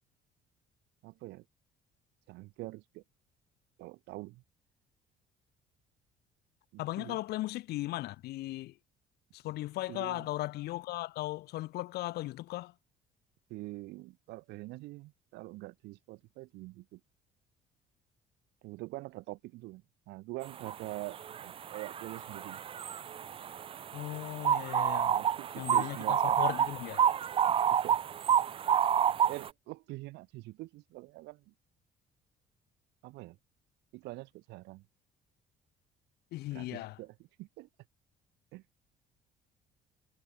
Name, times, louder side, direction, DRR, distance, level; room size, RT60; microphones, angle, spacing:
voice 1, 1.0-1.4 2.3-3.0 3.8-4.4 6.7-7.2 9.9-10.3 13.5-17.0 18.6-22.6 25.0-26.4 27.5-28.0 29.3-31.5 33.0-33.4 33.9-34.9 36.5-37.7 38.5-38.6, right 20 dB, 90° right, 1.7 m, -45 dB
voice 2, 6.8-8.7 9.3-12.7 23.9-25.2 25.6-27.0 36.3-37.0, left 17 dB, 70° left, 0.6 m, -37 dB
sound 1, 20.6-20.7 21.1-29.5, right 8 dB, 35° right, 0.4 m, -29 dB
cardioid pair, 110°, 17 cm